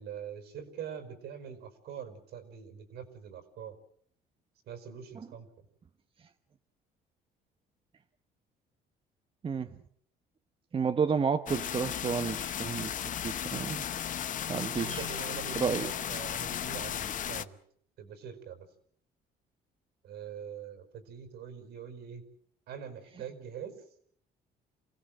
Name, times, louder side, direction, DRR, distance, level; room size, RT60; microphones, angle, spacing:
voice 1, 0.0-3.8 4.7-5.5 14.8-17.6 18.0-18.7 20.0-22.2 22.7-23.9, right 8 dB, 75° right, 8 dB, 5.3 m, -43 dB
voice 2, 9.4-9.8 10.7-12.9 13.2-13.8 14.5-15.0 15.6-15.9, right 6 dB, 30° right, 8 dB, 1.1 m, -31 dB
sound 1, 11.5-17.4, left 10 dB, 50° left, 0.9 m, -35 dB
28.5 x 17.0 x 7.7 m, 0.63 s
cardioid pair, 110°, 17 cm